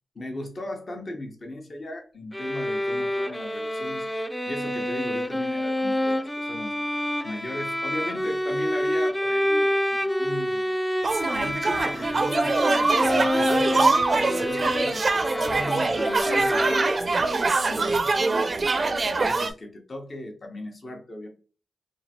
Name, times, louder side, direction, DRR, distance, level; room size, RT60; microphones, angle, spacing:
voice 1, 0.1-10.7 11.4-12.6 13.0-18.1 18.7-21.3, left 1 dB, 55° left, 2 dB, 1.0 m, -37 dB
sound 1, 2.3-17.3, left 1 dB, 10° left, 0.4 m, -27 dB
sound 2, 11.0-19.5, right 3 dB, 55° right, 0.4 m, -24 dB
2.8 x 2.5 x 2.8 m, 0.37 s
supercardioid pair, 40°, 0 cm